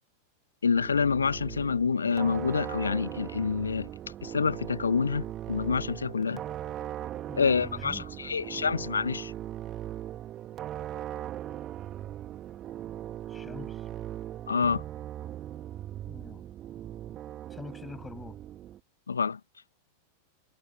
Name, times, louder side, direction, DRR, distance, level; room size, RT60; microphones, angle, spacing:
voice 1, 0.6-3.9 4.2-6.4 7.4-9.3 14.5-14.8 19.1-19.4, left 5 dB, 75° left, 1.4 m, -27 dB
sound 1, 0.7-18.8, right 12 dB, 30° right, 2.6 m, -39 dB
voice 2, 7.3-8.0 13.3-13.8 16.1-16.4 17.5-18.4, left 4 dB, 15° left, 7.4 m, -44 dB
figure-of-eight pair, 90°, 0 cm